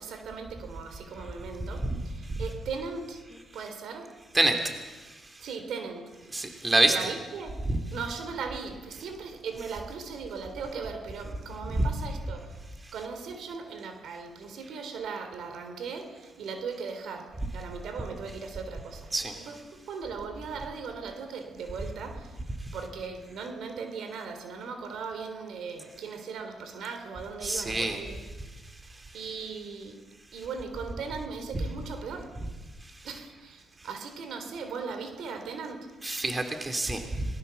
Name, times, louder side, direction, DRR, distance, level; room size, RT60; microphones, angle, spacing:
voice 1, 0.0-3.2 3.5-4.1 5.4-6.6 6.8-7.6 7.9-22.4 22.7-28.2 28.9-30.0 30.3-32.3 33.0-35.9, right 5 dB, 70° right, 7 dB, 3.4 m, -38 dB
voice 2, 6.3-7.1 7.7-7.8 11.8-11.9 19.1-19.3 27.4-28.0 36.0-37.2, right 2 dB, 20° right, 5 dB, 3.1 m, -26 dB
26.5 x 20.5 x 7.1 m, 1.3 s
cardioid pair, 90°, 0 cm